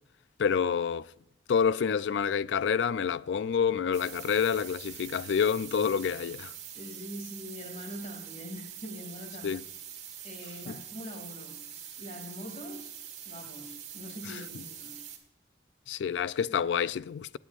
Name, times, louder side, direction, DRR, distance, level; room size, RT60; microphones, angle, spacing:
voice 1, 0.4-1.1 1.5-6.5 9.4-9.6 10.7-10.8 15.9-17.4, left 7 dB, 80° left, 0.3 m, -28 dB
sound 1, 3.9-15.2, right 9 dB, 40° right, 1.7 m, -44 dB
voice 2, 6.7-9.6 10.2-12.9 13.2-15.0 16.0-16.6, equal, 40° left, 2.5 m, -43 dB
17.0 x 10.0 x 2.4 m
head